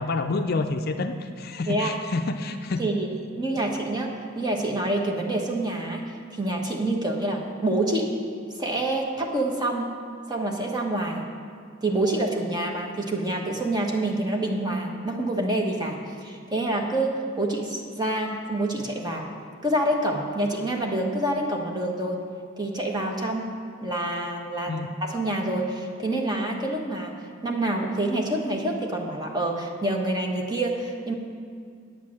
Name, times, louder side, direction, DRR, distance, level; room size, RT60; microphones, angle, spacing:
voice 1, 0.0-2.9 24.7-24.9, left 3 dB, 45° left, 6 dB, 0.5 m, -28 dB
voice 2, 3.4-6.0 6.3-8.1 8.6-9.9 10.3-11.3 11.8-19.3 19.6-22.2 22.6-23.5 23.8-27.1 27.4-31.1, right 1 dB, 20° right, 0 dB, 1.2 m, -27 dB
9.3 x 8.5 x 7.4 m, 2.2 s
head